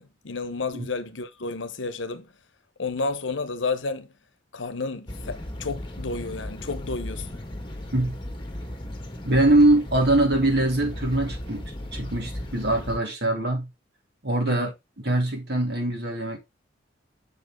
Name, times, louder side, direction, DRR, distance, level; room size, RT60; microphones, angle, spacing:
voice 1, 0.0-2.3 2.8-4.1 4.5-7.3 14.5-14.7, left 3 dB, 75° left, 0.9 m, -31 dB
sound 1, 5.1-13.0, left 1 dB, 25° left, 1.4 m, -36 dB
voice 2, 9.2-11.6 11.9-13.7 14.2-14.7 15.0-16.4, right 1 dB, 55° right, 2.5 m, -22 dB
7.1 x 5.3 x 3.6 m
head